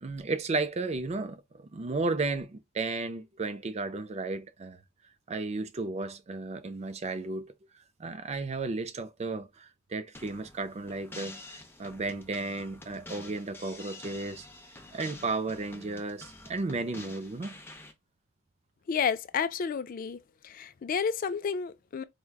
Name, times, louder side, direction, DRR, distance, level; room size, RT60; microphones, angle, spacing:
voice 1, 0.0-4.8 5.3-7.5 8.0-14.5 14.9-17.6, right 3 dB, 30° right, 0.4 m, -34 dB
sound 1, 10.1-17.9, left 2 dB, 10° left, 0.7 m, -48 dB
voice 2, 18.9-20.2 20.4-22.0, left 6 dB, 40° left, 0.3 m, -31 dB
4.6 x 2.2 x 2.3 m
head